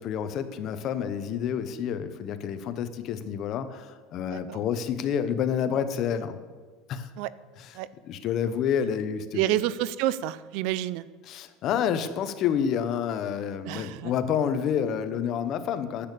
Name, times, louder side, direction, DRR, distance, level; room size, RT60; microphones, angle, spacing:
voice 1, 0.0-6.4 6.9-7.1 7.6-9.4 11.2-16.1, left 8 dB, 40° left, 11 dB, 0.9 m, -29 dB
voice 2, 4.3-4.6 7.2-7.3 7.7-7.9 9.3-11.1 13.6-14.1, right 13 dB, 60° right, 18 dB, 0.5 m, -28 dB
10.0 x 8.5 x 8.3 m, 1.4 s
supercardioid pair, 150°, 0 cm